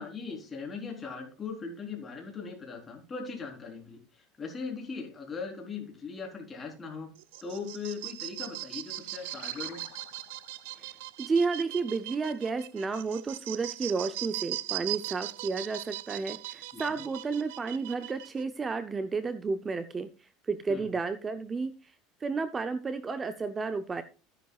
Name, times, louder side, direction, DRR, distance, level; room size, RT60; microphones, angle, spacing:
voice 1, 0.0-7.1 7.4-9.8 16.7-17.0 20.7-20.9, left 5 dB, 20° left, 1 dB, 3.8 m, -39 dB
sound 1, 7.2-18.4, right 17 dB, 80° right, 0.6 m, -39 dB
sound 2, 8.3-13.2, left 10 dB, 70° left, 2.8 m, -56 dB
voice 2, 11.2-21.9 22.2-24.0, right 4 dB, 15° right, 11 dB, 0.6 m, -32 dB
13.5 x 10.5 x 2.4 m, 0.33 s
cardioid pair, 150°, 0 cm